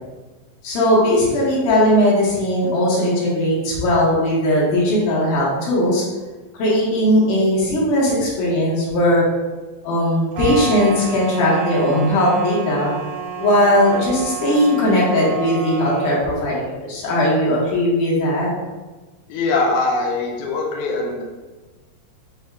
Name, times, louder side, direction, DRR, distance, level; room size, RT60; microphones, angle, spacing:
voice 1, 0.6-6.0 6.5-9.2 9.8-12.9 13.4-18.5, left 1 dB, 70° left, -6 dB, 2.4 m, -18 dB
sound 1, 10.3-16.3, right 6 dB, 80° right, 2.2 m, -30 dB
voice 2, 19.3-21.2, left 3 dB, 85° left, -1 dB, 1.8 m, -22 dB
6.8 x 2.8 x 2.2 m, 1.2 s
omnidirectional pair, 4.2 m